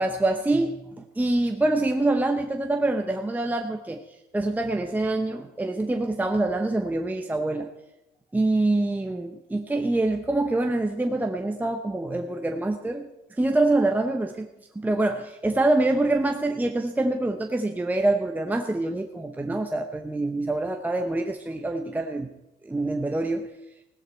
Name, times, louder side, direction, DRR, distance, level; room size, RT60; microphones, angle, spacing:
voice 1, 0.0-4.0 4.3-7.7 8.3-13.1 13.4-14.5 14.8-22.3 22.6-23.5, right 2 dB, 10° right, 4 dB, 0.9 m, -25 dB
16.5 x 13.0 x 4.4 m, 0.92 s
cardioid pair, 110°, 17 cm